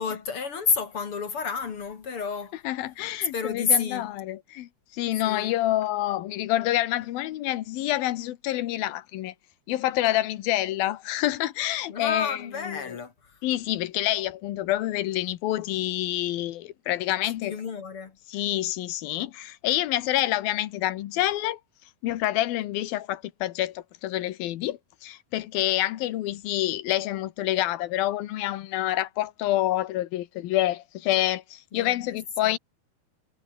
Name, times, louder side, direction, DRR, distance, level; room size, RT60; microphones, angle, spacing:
voice 1, 0.0-2.6 3.3-4.1 5.2-5.5 11.9-13.4 17.2-18.2 31.7-32.2 32.4-32.5, left 6 dB, 45° left, 2.4 m, -30 dB
voice 2, 2.6-9.3 9.7-12.4 12.6-13.0 13.4-17.5 18.3-21.6 22.0-32.6, left 14 dB, 75° left, 2.9 m, -27 dB
omnidirectional pair, 4.3 m